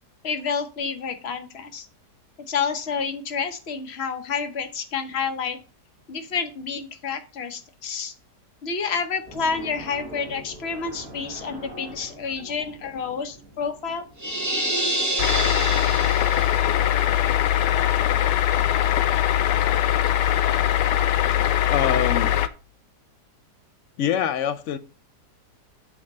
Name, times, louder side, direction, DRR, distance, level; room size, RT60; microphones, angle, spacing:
voice 1, 0.2-1.9 2.5-5.6 6.1-8.1 8.6-14.0, left 5 dB, 45° left, 1.1 m, -29 dB
sound 1, 9.3-16.0, right 1 dB, 60° right, 2.2 m, -44 dB
sound 2, 14.2-16.7, right 1 dB, 15° right, 0.8 m, -27 dB
sound 3, 15.2-22.5, left 11 dB, 85° left, 1.2 m, -21 dB
voice 2, 21.7-22.3 24.0-24.8, left 9 dB, 65° left, 0.8 m, -24 dB
8.6 x 3.6 x 5.3 m
omnidirectional pair, 1.8 m